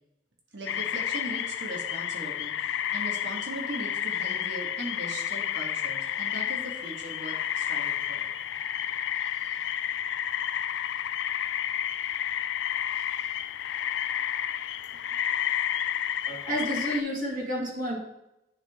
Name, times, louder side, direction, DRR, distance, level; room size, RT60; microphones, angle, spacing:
voice 1, 0.5-8.4, right 1 dB, 75° right, -1 dB, 1.5 m, -39 dB
sound 1, 0.7-17.0, left 10 dB, 80° left, 0.3 m, -31 dB
voice 2, 16.2-18.0, equal, 50° right, -3 dB, 1.9 m, -30 dB
9.9 x 3.7 x 3.6 m, 0.86 s
head